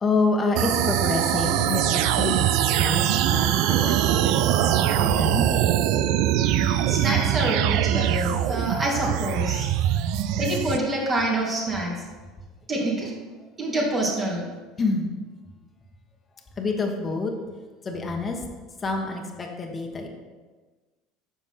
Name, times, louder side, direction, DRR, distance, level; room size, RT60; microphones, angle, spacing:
voice 1, 0.0-2.5 2.8-5.5 14.8-15.1 16.6-17.3 17.8-18.4 18.8-20.1, left 3 dB, 25° left, 2 dB, 1.4 m, -27 dB
sound 1, 0.5-10.8, right 11 dB, 55° right, 0.4 m, -22 dB
voice 2, 6.4-9.7 10.4-12.0 12.7-13.1 13.6-14.5, right 1 dB, 30° right, -3 dB, 2.9 m, -26 dB
9.0 x 6.2 x 4.5 m, 1.3 s
figure-of-eight pair, 70°, 0 cm